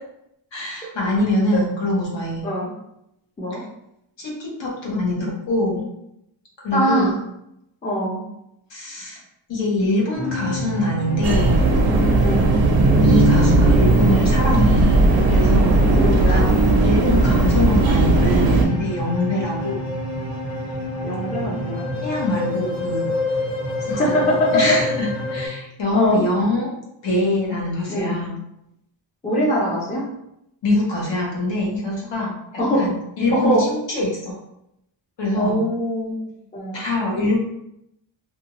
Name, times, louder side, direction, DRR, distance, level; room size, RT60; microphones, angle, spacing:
voice 1, 0.5-2.5 3.5-3.6 4.2-5.9 6.6-7.2 8.7-9.2 9.5-11.6 13.0-15.8 16.3-16.5 16.8-19.8 22.0-23.1 23.9-26.7 27.0-28.4 30.6-32.3 32.8-34.3 35.2-35.6 36.7-37.4, left 2 dB, 60° left, -3 dB, 1.0 m, -23 dB
voice 2, 6.7-7.1 7.8-8.2 12.2-12.5 15.9-16.5 21.0-21.9 23.9-24.6 25.9-26.2 27.9-28.2 29.2-30.0 32.6-32.8 33.3-33.6 35.3-36.1 36.5-36.8, equal, 15° left, -4 dB, 0.5 m, -22 dB
sound 1, 10.1-25.5, left 1 dB, 30° left, 1.2 m, -28 dB
sound 2, 11.2-18.7, right 2 dB, 50° right, 0.5 m, -16 dB
2.5 x 2.3 x 2.9 m, 0.81 s
wide cardioid pair, 160°, 50 cm